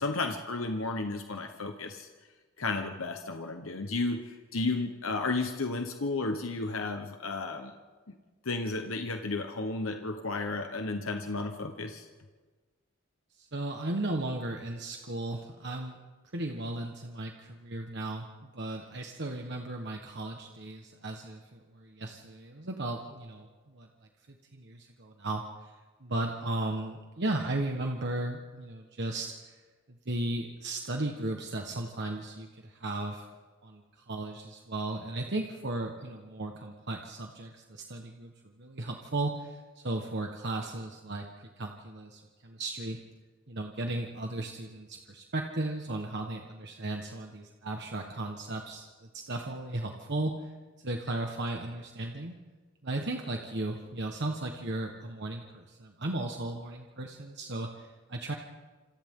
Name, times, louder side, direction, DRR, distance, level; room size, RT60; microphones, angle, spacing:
voice 1, 0.0-2.1 2.6-7.7 8.4-12.1, left 3 dB, 75° left, 5 dB, 1.1 m, -33 dB
voice 2, 13.4-15.9 16.3-23.9 24.5-25.7 26.0-29.6 30.0-33.3 33.6-43.0 43.5-48.9 49.1-50.5 50.8-52.3 52.8-58.3, right 2 dB, 55° right, 3 dB, 1.4 m, -35 dB
27.0 x 27.0 x 3.8 m, 1.4 s
head